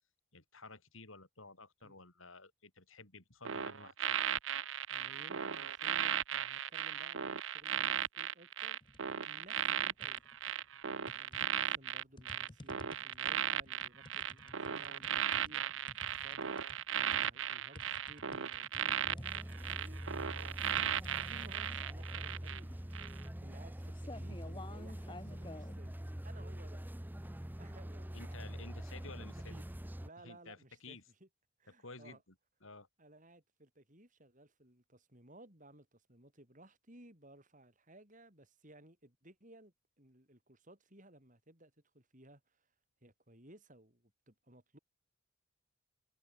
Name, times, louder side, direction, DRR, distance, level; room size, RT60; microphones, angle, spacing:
voice 1, 0.3-4.2 28.1-29.6 30.2-31.0 31.8-32.2 32.6-32.9, left 3 dB, 70° left, 6.6 m, -53 dB
sound 1, 3.4-22.6 22.9-23.2, right 9 dB, 60° right, 0.7 m, -36 dB
voice 2, 4.9-8.8 9.2-10.2 10.7-28.8 29.2-29.6 30.0-31.3 31.6-32.2 33.0-42.7 43.0-44.8, right 1 dB, 35° right, 5.8 m, -59 dB
sound 2, 8.8-9.2 9.6-10.5 11.1-25.8, left 2 dB, 20° left, 0.8 m, -54 dB
sound 3, 19.0-30.1, equal, 10° right, 0.7 m, -45 dB
head